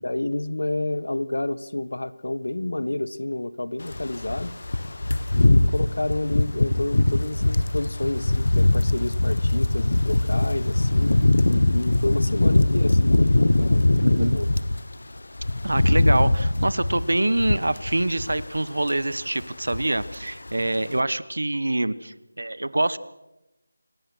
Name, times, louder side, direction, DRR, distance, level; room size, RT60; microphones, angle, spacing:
voice 1, 0.0-4.5 5.3-14.5, left 1 dB, 90° left, 16 dB, 1.5 m, -29 dB
sound 1, 3.9-14.8 15.2-18.6 18.8-19.1 19.4-20.2 20.5-20.7, left 2 dB, 65° left, 1.1 m, -21 dB
voice 2, 14.0-14.3 15.6-23.0, right 2 dB, 90° right, 17 dB, 1.2 m, -25 dB
27.0 x 17.5 x 6.3 m, 0.95 s
figure-of-eight pair, 180°, 0 cm